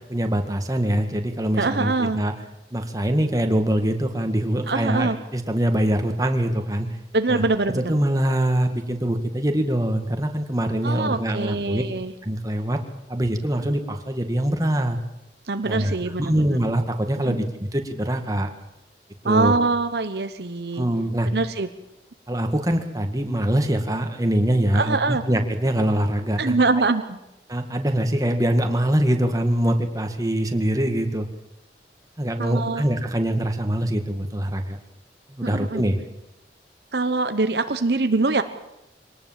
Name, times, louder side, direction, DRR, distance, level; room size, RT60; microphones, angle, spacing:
voice 1, 0.1-2.3 2.7-6.9 7.3-7.4 7.9-11.8 12.2-12.8 13.1-15.0 15.6-15.9 16.2-18.5 19.2-19.5 20.8-21.3 22.3-26.5 27.5-31.3 32.2-34.8 35.3-36.0, right 1 dB, 20° right, 5 dB, 1.9 m, -23 dB
voice 2, 1.6-2.2 4.7-5.2 7.1-8.0 10.8-12.1 15.5-16.6 17.2-17.4 19.2-20.9 21.3-21.7 24.7-25.2 26.4-27.2 32.4-32.8 35.4-35.8 36.9-38.4, right 3 dB, 65° right, 9 dB, 1.0 m, -23 dB
24.0 x 19.0 x 7.5 m, 0.90 s
head